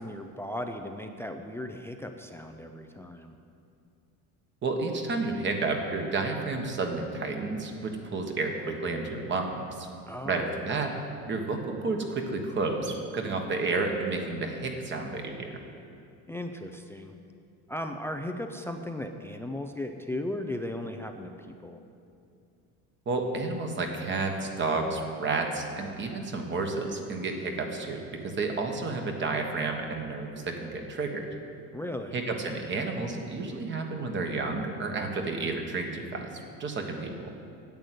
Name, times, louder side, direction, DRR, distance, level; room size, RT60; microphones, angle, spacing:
voice 1, 0.0-3.4 10.1-10.5 16.3-17.1 17.7-21.3 21.6-21.8 31.7-32.2, left 1 dB, 5° left, 5 dB, 0.4 m, -36 dB
voice 2, 4.6-9.9 10.2-10.9 11.3-15.5 23.0-31.3 32.1-36.3 36.6-37.3, right 3 dB, 30° right, 3 dB, 1.4 m, -31 dB
10.5 x 8.0 x 9.2 m, 2.5 s
cardioid pair, 150°, 39 cm